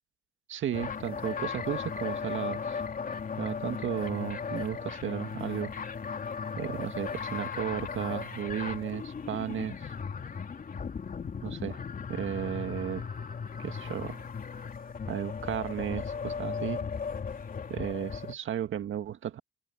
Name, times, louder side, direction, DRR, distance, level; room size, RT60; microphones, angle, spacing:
voice 1, 0.5-2.8 3.4-5.7 6.6-9.9 11.4-11.8 12.1-13.1 13.6-14.3 15.1-16.8 17.7-19.4, right 10 dB, 65° right, 1.7 m, -34 dB
bent Speak & Spell too, 0.7-18.3, left 6 dB, 40° left, 3.4 m, -36 dB
cardioid pair, 100°, 21 cm